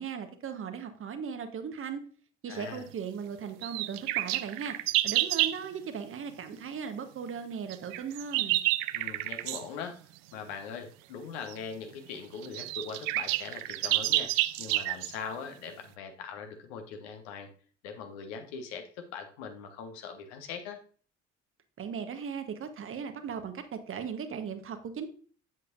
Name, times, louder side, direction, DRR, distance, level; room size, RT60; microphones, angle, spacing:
voice 1, 0.0-2.0 2.4-4.7 5.0-8.6 21.8-25.1, right 6 dB, 35° right, 8 dB, 1.1 m, -37 dB
voice 2, 2.5-2.9 8.9-10.0 10.3-14.3 14.6-17.5 17.8-20.8, left 6 dB, 65° left, 6 dB, 1.2 m, -41 dB
sound 1, 3.6-5.6 7.7-9.7 11.5-11.6 12.1-12.2 12.4-15.1, right 17 dB, 55° right, 0.5 m, -29 dB
8.1 x 7.4 x 2.6 m, 0.43 s
figure-of-eight pair, 50°, 36 cm